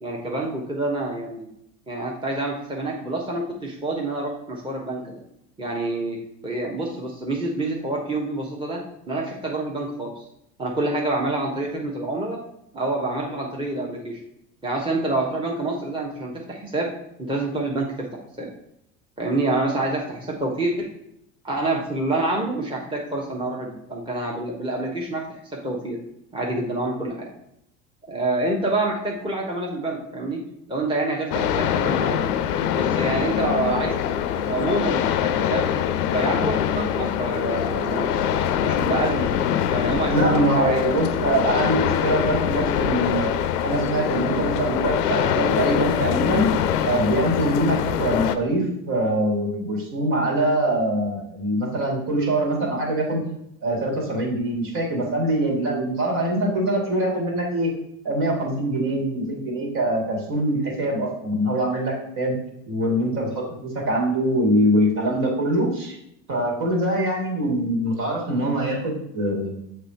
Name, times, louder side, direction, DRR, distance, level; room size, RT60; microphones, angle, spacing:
voice 1, 0.0-1.5 1.9-5.2 5.6-8.8 9.1-10.2 10.6-12.4 12.7-14.2 14.6-16.9 17.2-18.1 18.4-18.5 19.2-20.9 21.4-26.0 26.3-27.3 28.0-30.4 30.7-32.2 32.7-33.9 34.4-35.7 36.1-38.1 38.6-39.3 39.7-40.8 41.2-41.5, right 2 dB, 10° right, -2 dB, 1.1 m, -27 dB
sound 1, 31.3-48.4, left 9 dB, 85° left, 0.5 m, -23 dB
voice 2, 40.1-43.3 43.6-46.5 46.8-53.2 53.6-57.7 58.0-62.3 62.7-66.0 66.3-69.5, right 1 dB, 55° right, -1 dB, 2.4 m, -23 dB
6.7 x 3.3 x 4.3 m, 0.78 s
hypercardioid pair, 70°, 45 cm